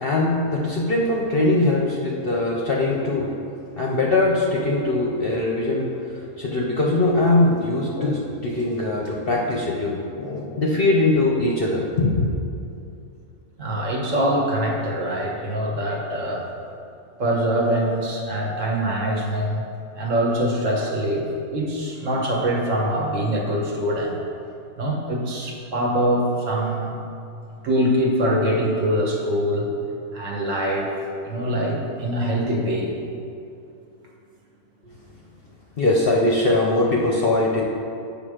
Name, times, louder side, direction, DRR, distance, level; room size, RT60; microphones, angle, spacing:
voice 1, 0.0-3.3 3.8-5.9 6.4-12.3 35.8-37.6, left 2 dB, 50° left, -2 dB, 0.7 m, -21 dB
voice 2, 13.6-16.4 17.2-19.7 19.9-24.2 24.8-27.0 27.6-29.7 30.1-31.0 31.2-32.9, equal, 60° right, -1 dB, 1.3 m, -23 dB
7.6 x 5.3 x 4.9 m, 2.6 s
omnidirectional pair, 1.6 m